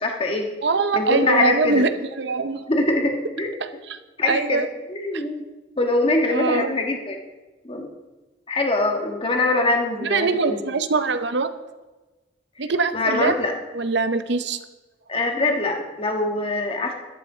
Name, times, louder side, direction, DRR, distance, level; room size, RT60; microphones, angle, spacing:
voice 1, 0.0-0.5 0.9-1.9 2.7-3.6 4.2-5.4 5.8-7.2 7.6-7.9 8.5-10.6 12.9-13.5 15.1-16.9, left 2 dB, 30° left, 2 dB, 1.5 m, -23 dB
voice 2, 0.6-1.9 2.2-2.6 3.6-4.0 4.3-4.7 6.3-6.7 9.6-9.7 10.0-11.5 12.6-13.3 13.7-14.6, right 4 dB, 65° right, 11 dB, 0.7 m, -22 dB
12.0 x 12.0 x 3.9 m, 1.2 s
head